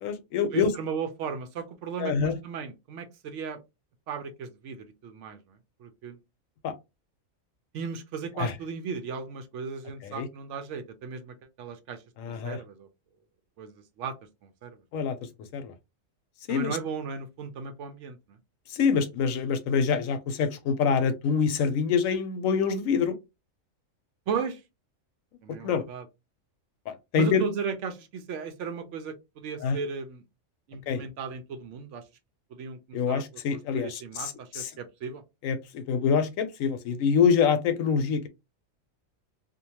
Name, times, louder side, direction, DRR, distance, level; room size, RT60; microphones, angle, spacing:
voice 1, 0.0-0.7 2.0-2.4 6.6-6.7 8.4-8.5 10.0-10.3 12.2-12.6 14.9-15.2 15.5-15.7 16.5-16.8 18.7-23.2 25.6-25.8 26.9-27.4 29.6-29.8 30.9-31.0 32.9-34.7 35.4-38.3, left 6 dB, 75° left, 1.0 m, -26 dB
voice 2, 0.5-3.6 4.1-5.4 5.8-6.2 7.7-12.9 13.6-13.7 14.0-14.2 14.4-14.8 16.5-18.4 24.3-24.6 25.4-26.0 27.1-30.2 30.7-32.0 32.5-33.2 33.7-35.2, right 6 dB, 70° right, 0.9 m, -36 dB
2.7 x 2.2 x 2.8 m
omnidirectional pair, 1.4 m